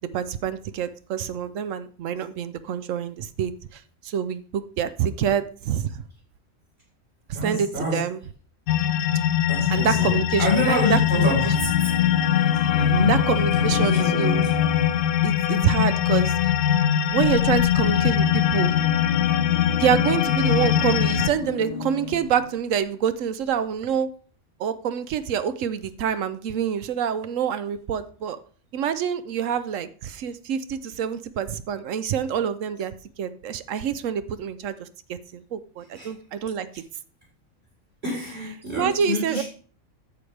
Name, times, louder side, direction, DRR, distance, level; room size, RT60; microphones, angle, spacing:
voice 1, 0.1-6.0 7.3-8.2 9.7-11.3 13.1-14.4 15.2-16.5 17.1-18.7 19.8-24.1 24.6-28.4 28.7-36.8 38.7-39.4, right 8 dB, 70° right, 13 dB, 1.0 m, -26 dB
voice 2, 7.3-8.0 9.5-11.9 12.7-13.2 13.5-14.4 35.9-36.1 38.0-39.4, left 1 dB, 35° right, -5 dB, 4.2 m, -27 dB
sound 1, 8.7-21.3, left 10 dB, 85° left, 1.0 m, -21 dB
sound 2, 10.6-15.4 17.1-22.6 23.5-23.6 23.8-23.9, left 3 dB, 40° left, 0.7 m, -34 dB
10.5 x 7.2 x 3.3 m, 0.42 s
omnidirectional pair, 1.4 m